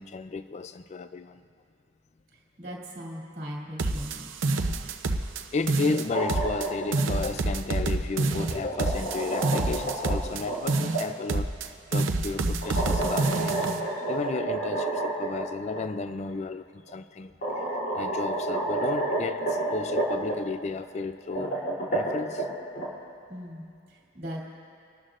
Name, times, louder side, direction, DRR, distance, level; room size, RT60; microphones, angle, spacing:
voice 1, 0.0-1.4 5.5-13.6 14.1-17.6 17.9-21.6 21.9-22.5, left 3 dB, 35° left, 11 dB, 0.3 m, -33 dB
voice 2, 2.6-4.2 23.3-24.4, equal, 45° right, -4 dB, 2.7 m, -39 dB
sound 1, 3.8-5.4 5.7-6.7 6.9-10.4 10.7-11.7 11.9-13.8, right 2 dB, 80° right, 0.7 m, -27 dB
sound 2, 5.9-7.0 8.2-11.0 12.6-15.4 15.7-15.8 16.9-17.0 17.4-20.3 21.2-22.9, right 2 dB, 55° left, 3.1 m, -30 dB
27.0 x 13.0 x 2.5 m, 2.4 s
head